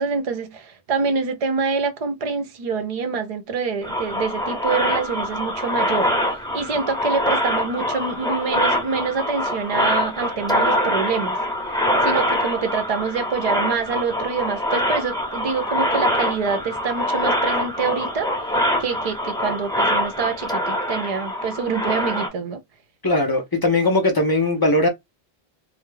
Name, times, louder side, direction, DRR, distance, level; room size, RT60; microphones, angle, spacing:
voice 1, 0.0-6.1 6.5-11.4 12.0-18.3 18.8-22.6, right 5 dB, 45° right, 0.5 m, -26 dB
sound 1, 3.8-22.3, equal, 5° left, 0.7 m, -24 dB
voice 2, 23.0-24.9, left 2 dB, 40° left, 0.3 m, -19 dB
2.2 x 2.0 x 3.1 m
omnidirectional pair, 1.0 m